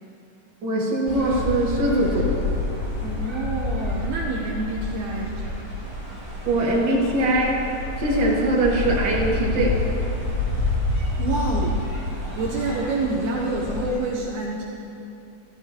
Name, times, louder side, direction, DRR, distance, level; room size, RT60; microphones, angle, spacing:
voice 1, 0.6-2.3 6.5-7.5 8.0-9.7, right 1 dB, 40° right, -5 dB, 2.1 m, -21 dB
sound 1, 1.1-14.0, left 2 dB, 15° right, 1.1 m, -28 dB
voice 2, 3.0-5.7 10.3-10.7 11.2-11.8 12.4-14.6, right 2 dB, 75° right, -2 dB, 2.2 m, -28 dB
14.0 x 14.0 x 2.8 m, 2.8 s
omnidirectional pair, 3.9 m